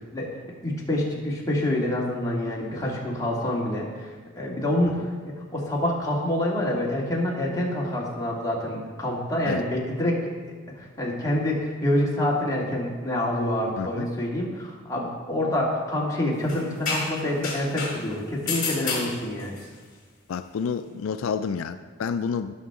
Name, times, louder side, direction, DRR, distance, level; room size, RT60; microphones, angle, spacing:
voice 1, 0.6-10.3 10.8-19.6, left 1 dB, 15° left, -4 dB, 2.1 m, -27 dB
voice 2, 13.8-14.1 20.3-22.5, left 6 dB, 85° left, 10 dB, 0.4 m, -29 dB
sound 1, 16.5-18.0 18.5-19.6, left 4 dB, 50° left, 3.3 m, -29 dB
16.5 x 6.0 x 3.7 m, 1.5 s
head